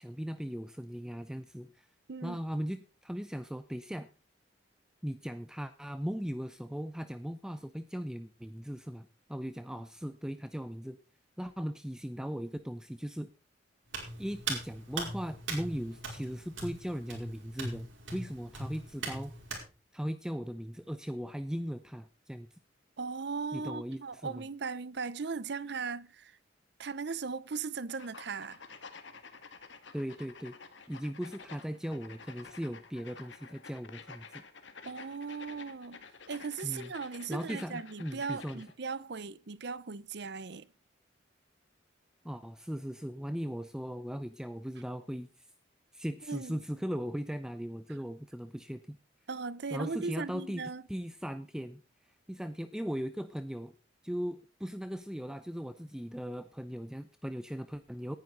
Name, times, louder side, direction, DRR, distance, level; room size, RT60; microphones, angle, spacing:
voice 1, 0.0-1.9 2.2-4.1 5.0-11.0 11.4-13.3 14.2-19.3 19.9-22.6 23.5-24.4 29.9-30.6 30.9-34.4 36.6-36.9 37.3-38.6 42.2-45.5 45.9-49.0 49.7-50.6 50.9-53.7 54.0-58.2, equal, 5° right, 0.5 m, -38 dB
voice 2, 2.1-2.4 23.0-26.3 26.8-28.6 34.9-40.7 46.3-46.6 49.3-50.8, right 5 dB, 60° right, 0.7 m, -38 dB
Hands, 13.9-19.6, right 3 dB, 85° right, 5.5 m, -40 dB
sound 1, 28.0-38.7, left 5 dB, 70° left, 1.9 m, -51 dB
18.5 x 10.5 x 3.9 m
head